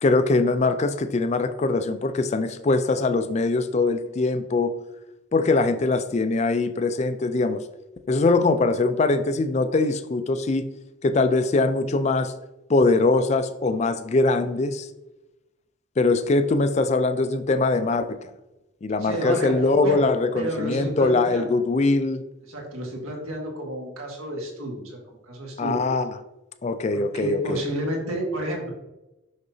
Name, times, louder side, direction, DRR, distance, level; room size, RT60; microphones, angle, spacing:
voice 1, 0.0-4.7 5.3-7.6 8.1-10.7 11.0-12.3 12.7-14.9 16.0-18.2 18.8-22.2 25.6-26.1 26.6-27.6, left 3 dB, 30° left, 11 dB, 0.3 m, -22 dB
voice 2, 19.0-20.1 20.3-21.6 22.5-25.0 25.3-25.8 26.9-28.7, right 1 dB, 80° right, 0 dB, 1.6 m, -30 dB
6.2 x 5.8 x 2.7 m, 0.97 s
head